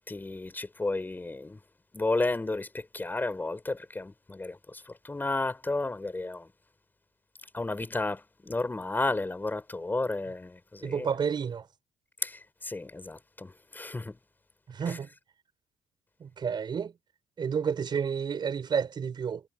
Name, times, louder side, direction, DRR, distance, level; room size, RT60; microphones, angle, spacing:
voice 1, 0.1-1.6 1.9-6.5 7.4-11.1 12.2-14.2 14.9-15.0, left 2 dB, 20° left, 5.8 m, -33 dB
voice 2, 10.8-11.7 14.7-15.1 16.2-16.9 17.4-19.4, right 6 dB, 45° right, 5.2 m, -30 dB
supercardioid pair, 75°, 10 cm